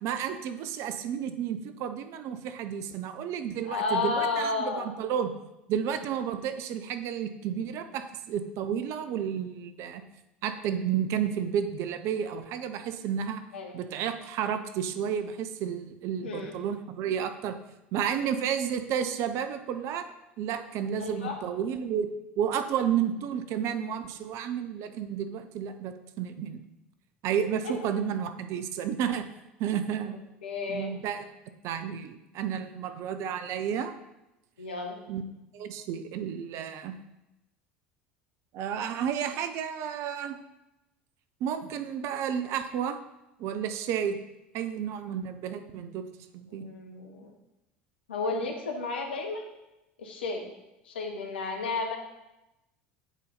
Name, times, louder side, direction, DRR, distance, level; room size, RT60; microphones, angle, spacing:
voice 1, 0.0-5.3 5.7-10.0 10.4-13.4 13.7-17.6 17.9-20.1 20.4-22.1 22.4-26.6 27.2-29.2 29.6-30.2 30.7-31.2 31.6-33.9 35.1-35.2 35.5-36.9 38.5-40.4 41.4-43.0 43.4-44.2 44.5-46.0 46.3-46.7, right 8 dB, 55° right, 10 dB, 0.6 m, -31 dB
voice 2, 3.6-4.9 13.5-13.7 16.2-16.6 21.0-21.4 27.6-27.7 30.4-30.9 34.6-34.9 46.5-47.3 48.1-49.5 50.0-50.5 50.8-52.0, left 3 dB, 80° left, 3 dB, 1.1 m, -32 dB
8.1 x 4.2 x 4.0 m, 0.95 s
hypercardioid pair, 70°, 6 cm